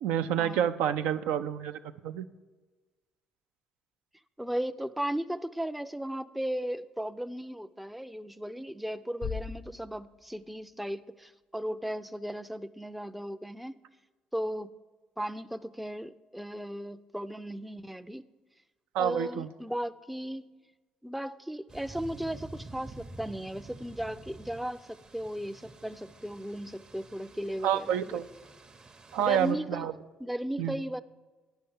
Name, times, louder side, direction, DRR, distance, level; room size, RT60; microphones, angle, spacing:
voice 1, 0.0-2.2 18.9-19.5 27.6-28.2 29.1-29.9 30.6-30.8, right 9 dB, 80° right, 9 dB, 0.4 m, -28 dB
voice 2, 4.4-13.7 14.3-14.7 15.2-18.2 19.0-20.5 21.0-28.2 29.2-29.9 30.2-31.0, equal, 5° right, 11 dB, 0.4 m, -36 dB
Bass drum, 9.2-10.9, left 6 dB, 45° left, 0.5 m, -40 dB
sound 1, 21.7-29.5, right 2 dB, 35° right, 0.7 m, -49 dB
9.0 x 5.6 x 7.0 m, 1.3 s
supercardioid pair, 65°, 3 cm